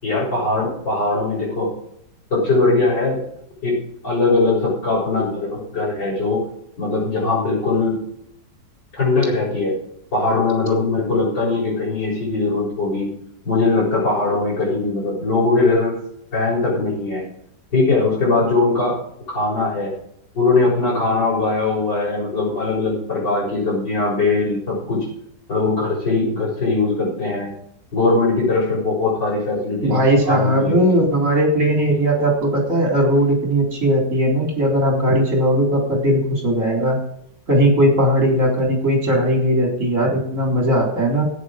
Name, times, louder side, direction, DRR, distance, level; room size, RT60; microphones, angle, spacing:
voice 1, 0.0-1.7 2.3-3.2 3.6-3.8 4.0-6.4 6.8-7.9 8.9-9.7 10.1-13.1 13.4-16.0 16.3-17.2 17.7-19.0 19.3-19.9 20.3-25.1 25.5-27.5 27.9-30.0 30.3-31.0, left 3 dB, 75° left, -9 dB, 6.7 m, -20 dB
voice 2, 29.8-37.0 37.5-41.2, equal, 45° right, 0 dB, 4.2 m, -18 dB
14.0 x 9.9 x 5.0 m, 0.74 s
omnidirectional pair, 1.9 m